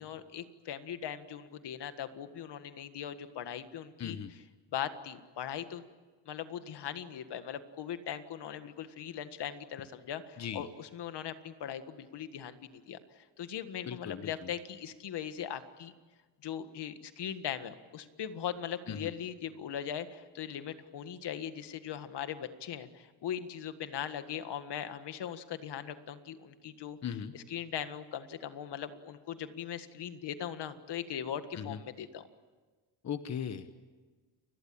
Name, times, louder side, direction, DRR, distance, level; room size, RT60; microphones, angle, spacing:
voice 1, 0.0-4.2 4.7-5.8 6.3-15.9 16.4-27.0 27.3-32.2, left 9 dB, 65° left, 10 dB, 1.8 m, -40 dB
voice 2, 4.0-4.4 10.4-10.7 13.8-14.5 18.9-19.1 27.0-27.3 31.5-31.8 33.0-33.7, left 8 dB, 40° left, 10 dB, 1.1 m, -38 dB
29.5 x 22.0 x 8.8 m, 1.4 s
cardioid pair, 150°, 44 cm